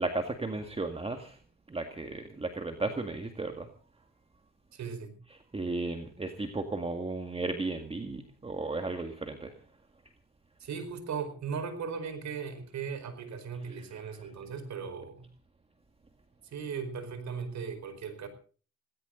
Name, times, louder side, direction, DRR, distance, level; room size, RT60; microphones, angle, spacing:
voice 1, 0.0-1.4 1.7-3.7 5.5-9.5, right 3 dB, 20° right, 6 dB, 2.0 m, -34 dB
voice 2, 4.7-5.2 10.6-15.3 16.4-18.3, right 6 dB, 65° right, 10 dB, 4.9 m, -38 dB
18.5 x 17.5 x 3.9 m, 0.39 s
cardioid pair, 90°, 30 cm